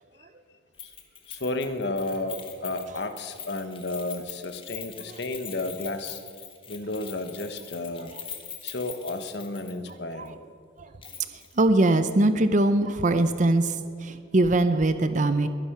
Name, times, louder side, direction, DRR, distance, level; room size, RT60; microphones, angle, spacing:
Keys jangling, 0.8-9.9 10.2-10.3 11.0-11.5 11.8-11.9, left 8 dB, 25° left, 1.5 m, -42 dB
voice 1, 1.3-6.2 6.7-8.1 8.6-10.4, left 2 dB, 60° left, 9 dB, 1.1 m, -32 dB
voice 2, 11.3-15.5, right 2 dB, 40° right, 10 dB, 0.6 m, -22 dB
21.5 x 10.0 x 6.0 m, 2.3 s
head